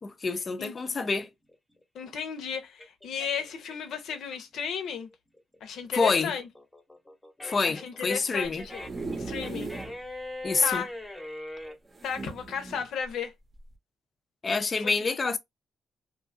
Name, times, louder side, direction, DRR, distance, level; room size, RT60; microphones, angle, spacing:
voice 1, 0.0-1.3 5.9-6.3 7.4-8.6 10.4-10.8 14.4-15.4, left 4 dB, 35° left, 0.4 m, -27 dB
sound 1, 1.2-4.6 5.0-11.8, left 1 dB, 10° left, 0.8 m, -42 dB
voice 2, 1.9-5.1 5.6-6.5 7.6-8.8 9.2-9.7 10.6-10.9 12.0-13.3 14.8-14.9, left 7 dB, 80° left, 0.7 m, -34 dB
sound 2, 8.4-10.0 10.4-10.5 10.7-10.8 11.9-12.9 13.6-13.7, right 3 dB, 30° right, 0.7 m, -38 dB
2.7 x 2.4 x 2.5 m
cardioid pair, 105°, 0 cm